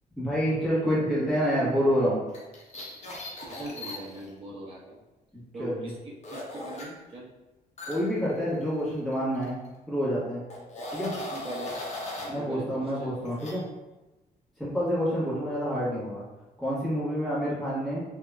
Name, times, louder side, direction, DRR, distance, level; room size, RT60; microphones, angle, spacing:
voice 1, 0.2-2.3 5.3-5.9 7.9-9.6 9.9-10.4 10.9-11.1 12.3-13.6 14.6-16.2 16.6-18.0, equal, ahead, -11 dB, 1.4 m, -28 dB
sound 1, 2.3-4.3 6.2-6.9 7.8-9.2 9.4-9.7 10.5-12.3 13.2-13.5, left 1 dB, 45° left, 0.9 m, -38 dB
voice 2, 3.5-5.0 5.5-7.3 11.3-11.8 12.1-13.1 14.7-14.9, right 1 dB, 35° right, -6 dB, 1.1 m, -41 dB
3.6 x 2.7 x 2.3 m, 1.1 s
cardioid pair, 95°, 17 cm